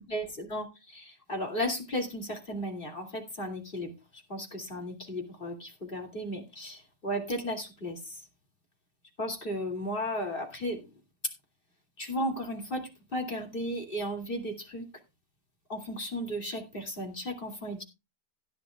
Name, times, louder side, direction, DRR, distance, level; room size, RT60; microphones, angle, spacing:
voice 1, 0.1-8.2 9.2-10.9 12.0-14.9 15.7-17.8, equal, 30° left, 3 dB, 2.7 m, -35 dB
17.0 x 10.0 x 2.3 m, 0.25 s
omnidirectional pair, 1.7 m